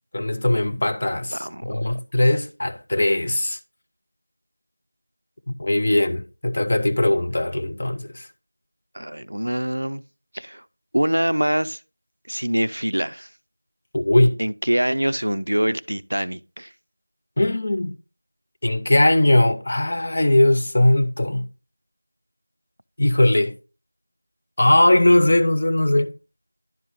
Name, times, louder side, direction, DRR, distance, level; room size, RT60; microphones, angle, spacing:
voice 1, 0.1-3.6 5.5-8.3 13.9-14.4 17.4-18.0 18.6-21.5 23.0-23.5 24.6-26.1, left 1 dB, 25° left, 0.5 m, -19 dB
voice 2, 1.3-1.9 8.9-10.0 10.3-10.6 10.9-11.8 12.3-13.3 14.4-16.7, right 1 dB, 60° right, 0.4 m, -24 dB
10.5 x 5.3 x 3.1 m
figure-of-eight pair, 175°, 0 cm